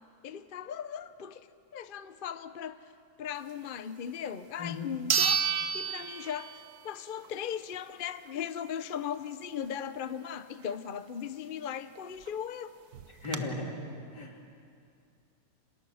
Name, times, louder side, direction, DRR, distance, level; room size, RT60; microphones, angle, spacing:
voice 1, 0.2-1.5 1.7-2.8 3.2-12.8, left 8 dB, 45° left, 12 dB, 0.7 m, -38 dB
sound 1, 4.3-4.4 5.1-6.9 7.2-7.3 12.0-12.1 12.3-12.4 12.9-13.4, right 7 dB, 65° right, 1.5 m, -29 dB
voice 2, 13.2-13.8 14.1-14.4, left 3 dB, 80° left, 0 dB, 3.9 m, -36 dB
30.0 x 26.5 x 6.4 m, 2.3 s
omnidirectional pair, 1.8 m